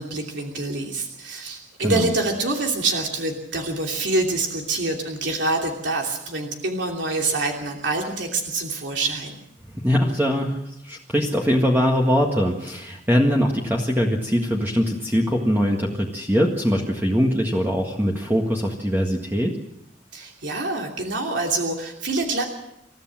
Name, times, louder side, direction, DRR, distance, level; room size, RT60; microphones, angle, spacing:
voice 1, 0.0-9.3 20.1-22.4, right 2 dB, 75° right, 1 dB, 2.9 m, -26 dB
voice 2, 9.7-19.6, equal, 10° right, -1 dB, 1.8 m, -22 dB
28.5 x 14.5 x 7.6 m, 0.84 s
head